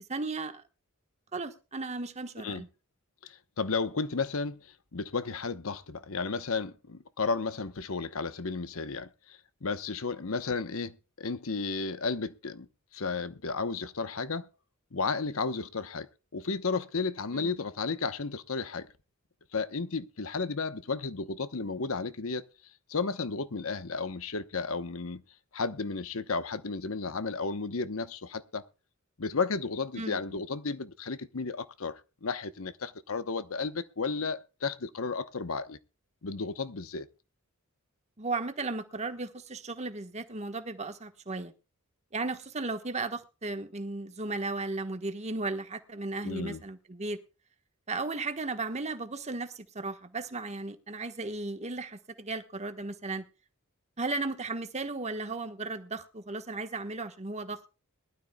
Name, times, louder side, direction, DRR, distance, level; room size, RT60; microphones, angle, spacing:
voice 1, 0.1-0.6 1.3-2.7 17.3-17.5 30.0-30.4 38.2-41.5 42.1-47.2 47.9-53.2 54.0-57.6, right 3 dB, 30° right, 1.3 m, -35 dB
voice 2, 3.2-12.7 12.9-14.5 14.9-16.1 16.3-18.9 19.5-22.4 22.9-25.2 25.5-28.6 29.2-35.8 36.2-37.1 46.2-46.6, left 4 dB, 75° left, 1.0 m, -33 dB
21.5 x 12.5 x 2.3 m
head